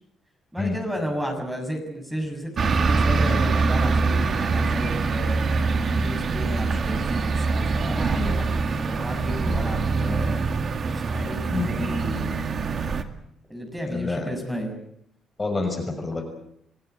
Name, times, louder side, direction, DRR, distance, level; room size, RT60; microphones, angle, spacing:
voice 1, 0.5-10.5 11.1-12.5 13.5-14.8, equal, 5° right, 3 dB, 6.7 m, -32 dB
sound 1, 2.6-13.0, right 4 dB, 50° right, 2.1 m, -24 dB
voice 2, 13.9-14.3 15.4-16.2, left 3 dB, 25° left, 4 dB, 6.0 m, -27 dB
28.0 x 16.5 x 8.1 m, 0.73 s
cardioid pair, 90°, 0 cm